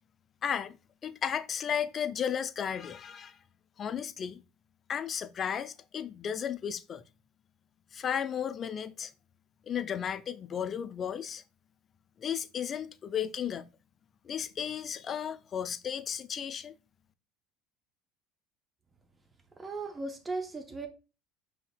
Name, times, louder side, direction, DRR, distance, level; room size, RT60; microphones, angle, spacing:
voice 1, 0.4-0.8 1.0-3.4 3.8-4.4 4.9-7.0 7.9-9.1 9.7-11.4 12.2-13.7 14.2-16.7, left 8 dB, 40° left, 0.4 m, -34 dB
voice 2, 19.6-20.9, right 3 dB, 20° right, 0.6 m, -37 dB
5.5 x 2.8 x 2.2 m
supercardioid pair, 90°, 0 cm